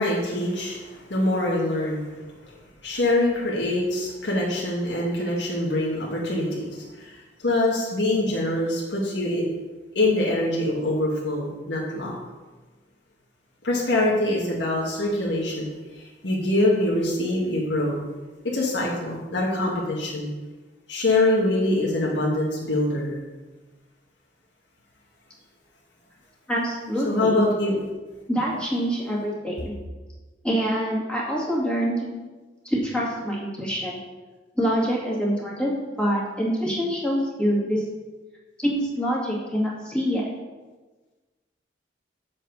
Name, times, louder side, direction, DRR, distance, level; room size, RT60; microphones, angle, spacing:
voice 1, 0.0-2.1 2.4-2.5 2.8-9.4 9.9-12.1 13.6-15.7 15.9-18.0 18.4-20.3 20.9-23.2 27.0-27.7, left 1 dB, 80° left, -4 dB, 1.5 m, -24 dB
voice 2, 26.5-27.4 28.3-29.7 30.4-32.1 32.6-34.0 34.6-35.7 36.0-37.8 38.6-40.2, equal, 5° left, -5 dB, 2.1 m, -25 dB
7.4 x 4.3 x 6.9 m, 1.3 s
head